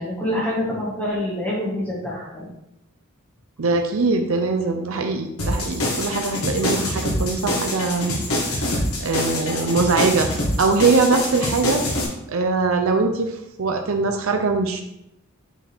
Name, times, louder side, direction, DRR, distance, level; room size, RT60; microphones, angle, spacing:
voice 1, 0.0-2.5, left 1 dB, 10° left, -6 dB, 1.7 m, -26 dB
voice 2, 3.6-8.2 8.5-8.7 9.0-10.3 10.6-11.8 12.3-14.8, right 4 dB, 70° right, 5 dB, 0.6 m, -22 dB
sound 1, 5.4-12.0, left 1 dB, 80° left, 1.6 m, -25 dB
5.9 x 4.7 x 3.5 m, 0.83 s
head